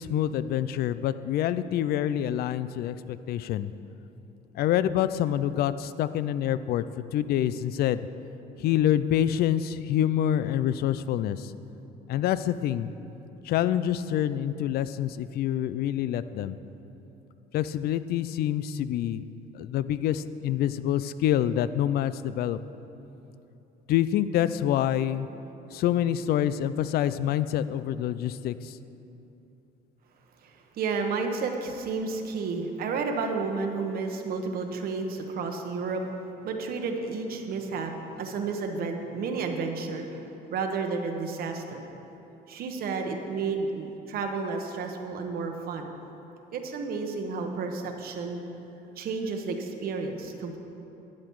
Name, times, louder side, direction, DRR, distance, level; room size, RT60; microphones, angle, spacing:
voice 1, 0.0-3.7 4.5-6.8 7.1-8.0 8.6-11.5 12.1-12.9 13.4-16.6 17.5-19.2 19.5-22.6 23.9-25.3 25.7-28.8, left 11 dB, 65° left, 14 dB, 0.4 m, -26 dB
voice 2, 30.4-36.0 36.4-40.2 40.5-41.8 42.5-45.9 46.5-48.4 49.0-50.6, right 4 dB, 65° right, 4 dB, 1.1 m, -31 dB
11.5 x 8.7 x 4.7 m, 2.9 s
cardioid pair, 110°, 17 cm